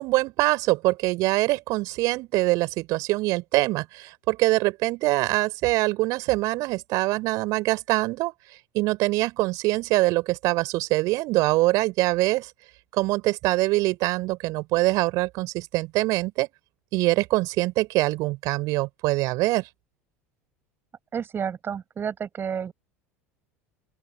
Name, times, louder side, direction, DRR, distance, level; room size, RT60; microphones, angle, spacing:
voice 1, 0.0-8.3 8.7-12.5 12.9-16.5 16.9-19.7, right 21 dB, 50° right, 4.8 m, -24 dB
voice 2, 21.1-22.7, right 7 dB, 30° right, 7.2 m, -30 dB
open air
figure-of-eight pair, 70°, 8 cm